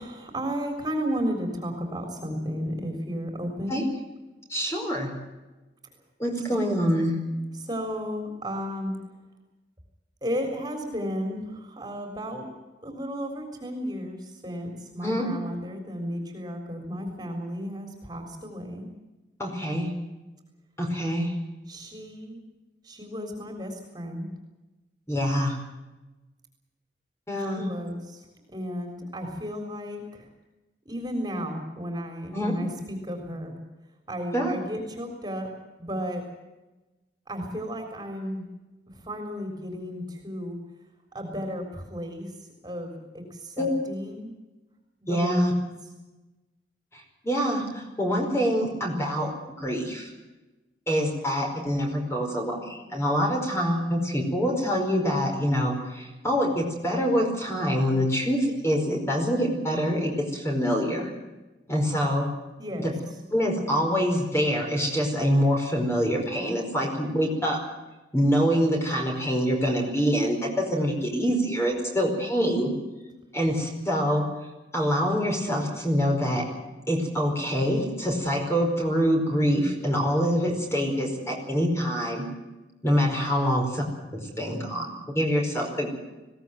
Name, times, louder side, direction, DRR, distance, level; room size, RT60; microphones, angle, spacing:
voice 1, 0.0-3.8 7.5-8.9 10.2-12.4 12.8-18.9 21.7-22.4 22.8-24.3 27.4-28.3 28.5-30.3 30.9-33.5 34.1-35.5 35.8-36.2 37.3-38.4 38.9-40.6 41.1-42.4 42.6-44.3 45.0-45.3 45.8-45.9 62.6-63.2, equal, 20° right, 4 dB, 3.9 m, -33 dB
voice 2, 4.5-5.1 6.2-7.1 15.0-15.3 19.4-19.9 20.8-21.3 25.1-25.6 27.3-27.6 32.3-32.6 34.3-34.5 43.6-43.7 45.1-45.5 47.2-49.3 49.6-50.1 50.9-61.1 61.7-62.3 62.8-62.9 63.3-67.6 68.1-72.7 73.3-74.3 74.7-76.4 76.9-82.3 82.8-83.8 84.1-86.0, equal, 15° left, 1 dB, 4.9 m, -25 dB
21.0 x 17.0 x 9.3 m, 1.1 s
head